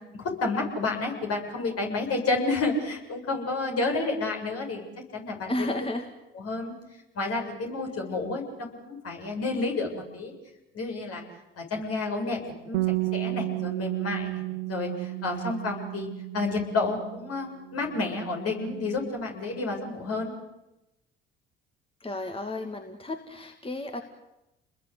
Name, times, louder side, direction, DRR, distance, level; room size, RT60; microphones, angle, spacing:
voice 1, 0.1-4.9 5.1-5.7 6.4-6.7 7.1-10.3 10.7-11.2 11.6-12.8 13.1-16.1 16.3-20.3, left 3 dB, 55° left, 2 dB, 7.6 m, -30 dB
voice 2, 5.5-6.1 22.0-24.0, left 1 dB, 20° left, 5 dB, 2.5 m, -32 dB
Bass guitar, 12.7-17.4 17.7-19.0, right 19 dB, 85° right, 1.1 m, -33 dB
29.5 x 21.5 x 8.4 m, 0.93 s
hypercardioid pair, 60°, 29 cm